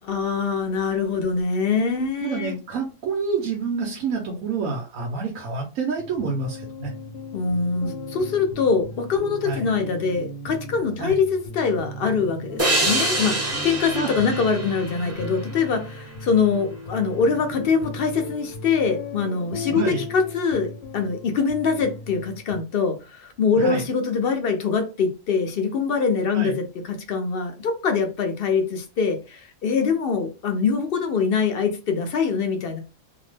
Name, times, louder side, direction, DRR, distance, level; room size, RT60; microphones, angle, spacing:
voice 1, 0.0-2.6 7.3-32.8, left 5 dB, 60° left, 0.7 m, -24 dB
voice 2, 2.2-6.9 9.4-9.6 11.0-11.2 13.9-14.1 19.7-20.0 23.5-23.8 26.3-26.6, right 4 dB, 85° right, 1.1 m, -28 dB
sound 1, 6.0-22.6, left 2 dB, 85° left, 1.0 m, -37 dB
sound 2, 12.6-15.9, right 1 dB, 25° right, 0.3 m, -26 dB
2.7 x 2.0 x 3.1 m
omnidirectional pair, 1.4 m